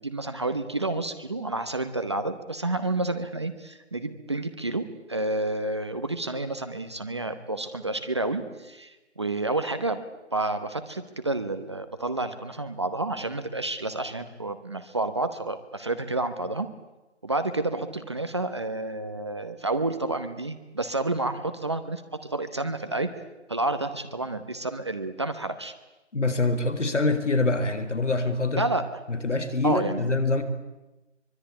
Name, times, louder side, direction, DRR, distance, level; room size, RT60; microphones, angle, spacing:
voice 1, 0.0-4.8 5.1-10.0 10.3-16.7 17.2-23.1 23.5-25.7 28.6-28.8 29.6-30.0, right 2 dB, 25° right, 9 dB, 0.9 m, -30 dB
voice 2, 26.1-28.6 29.1-30.4, left 3 dB, 70° left, 11 dB, 4.4 m, -25 dB
24.5 x 23.5 x 9.9 m, 1.1 s
figure-of-eight pair, 170°, 37 cm